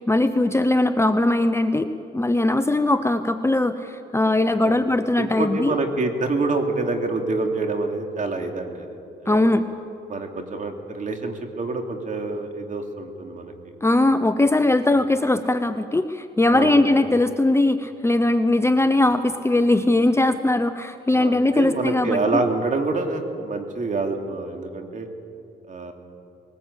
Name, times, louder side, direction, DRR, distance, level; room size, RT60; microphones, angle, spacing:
voice 1, 0.0-5.7 9.3-9.7 13.8-22.4, left 2 dB, 15° left, 10 dB, 0.8 m, -20 dB
voice 2, 5.2-9.4 10.1-13.5 16.5-16.8 21.1-25.1 25.7-25.9, right 3 dB, 40° right, 4 dB, 2.9 m, -27 dB
21.0 x 19.0 x 8.3 m, 2.5 s
cardioid pair, 90°, 20 cm